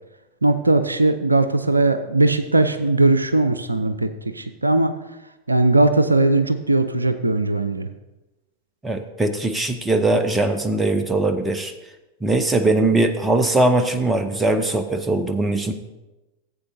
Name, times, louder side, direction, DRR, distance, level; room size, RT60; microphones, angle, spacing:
voice 1, 0.4-4.9 5.5-7.9, right 2 dB, 80° right, 10 dB, 0.5 m, -19 dB
voice 2, 8.8-11.7 12.2-15.7, right 2 dB, 10° right, 8 dB, 0.7 m, -20 dB
15.0 x 8.2 x 2.7 m, 1.0 s
figure-of-eight pair, 90°, 0 cm